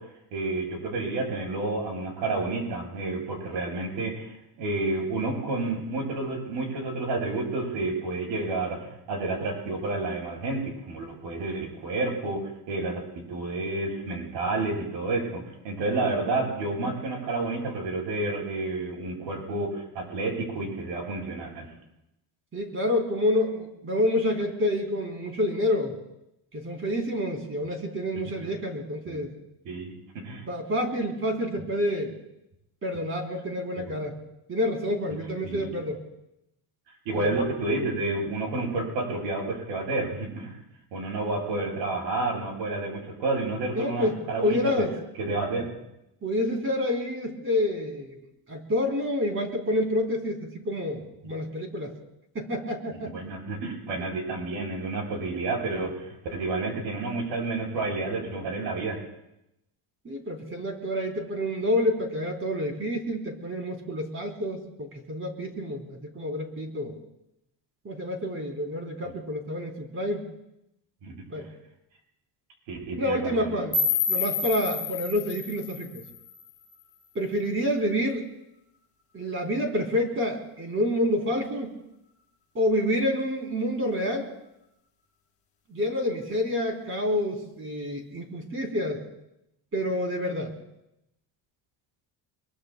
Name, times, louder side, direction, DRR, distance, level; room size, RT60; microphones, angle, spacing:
voice 1, 0.3-13.0 13.3-21.7 29.1-29.2 29.6-29.9 30.2-30.4 33.8-33.9 35.4-35.7 37.0-40.6 40.9-44.9 45.2-45.7 53.1-59.0 71.0-71.1 72.7-73.5, right 2 dB, 80° right, -1 dB, 7.9 m, -30 dB
voice 2, 22.5-25.9 26.5-29.3 30.5-32.2 32.8-34.2 34.5-36.0 37.1-37.3 43.7-44.9 46.2-48.2 48.5-51.9 52.3-53.1 60.0-67.0 67.8-70.3 71.3-71.5 72.9-73.8 74.1-76.0 77.1-78.2 79.1-81.8 82.5-84.3 85.7-89.0 89.7-90.5, left 1 dB, 30° right, 2 dB, 3.5 m, -28 dB
sound 1, 73.7-76.7, left 5 dB, 35° left, 1.2 m, -29 dB
25.0 x 23.0 x 2.2 m, 0.84 s
cardioid pair, 155°, 42 cm